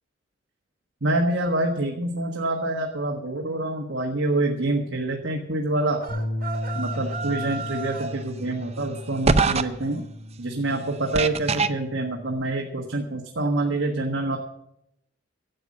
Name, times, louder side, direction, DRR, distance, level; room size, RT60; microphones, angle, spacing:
voice 1, 1.0-6.0 6.7-10.1 10.4-14.4, right 2 dB, 90° right, 1 dB, 1.5 m, -26 dB
sound 1, 6.0-8.2, right 2 dB, 50° right, 1.5 m, -34 dB
Bass guitar, 6.1-12.3, left 1 dB, 55° left, 6.8 m, -35 dB
sound 2, 8.0-8.1 9.2-9.6 11.1-11.7, right 4 dB, 35° right, 0.6 m, -20 dB
11.5 x 8.0 x 8.5 m, 0.79 s
head